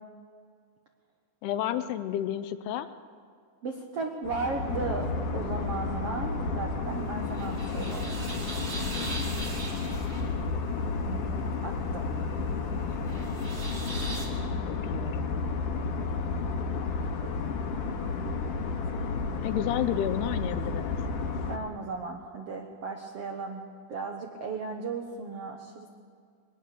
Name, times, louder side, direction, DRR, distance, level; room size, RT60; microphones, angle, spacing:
voice 1, 1.4-2.9 14.7-15.4 19.4-21.0, left 11 dB, 80° left, 11 dB, 2.6 m, -31 dB
voice 2, 3.6-8.2 11.0-11.2 11.6-12.0 21.5-23.6 23.9-25.9, right 4 dB, 80° right, 2 dB, 1.4 m, -35 dB
sound 1, 4.2-21.6, left 4 dB, 60° left, 2.6 m, -32 dB
sound 2, 6.9-14.3, right 2 dB, 30° right, 3.1 m, -41 dB
22.0 x 19.5 x 6.9 m, 2.2 s
omnidirectional pair, 4.8 m